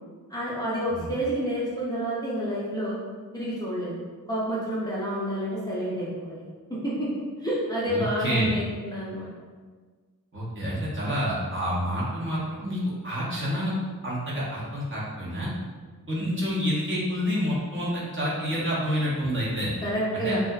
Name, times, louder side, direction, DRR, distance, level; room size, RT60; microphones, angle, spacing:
voice 1, 0.3-3.0 3.3-4.0 4.3-6.4 6.8-7.1 7.4-9.3 19.8-20.4, equal, 10° left, -8 dB, 0.6 m, -29 dB
voice 2, 7.9-8.5 10.3-13.7 14.0-15.5 16.1-19.7 20.1-20.4, equal, 35° right, -8 dB, 0.8 m, -28 dB
2.7 x 2.4 x 2.2 m, 1.5 s
wide cardioid pair, 80°, 36 cm